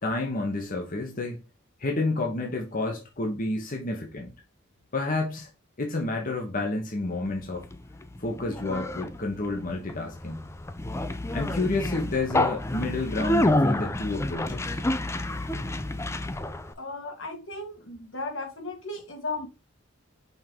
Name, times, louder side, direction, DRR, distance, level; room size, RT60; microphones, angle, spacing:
voice 1, 0.0-1.4 1.8-4.3 4.9-5.5 5.8-7.7 8.2-10.4 11.3-14.8, left 2 dB, 40° left, 1.1 m, -30 dB
Conversation, 7.3-16.7, left 1 dB, 15° left, 0.4 m, -29 dB
voice 2, 16.8-19.5, left 3 dB, 70° left, 1.7 m, -35 dB
5.7 x 3.7 x 4.4 m
head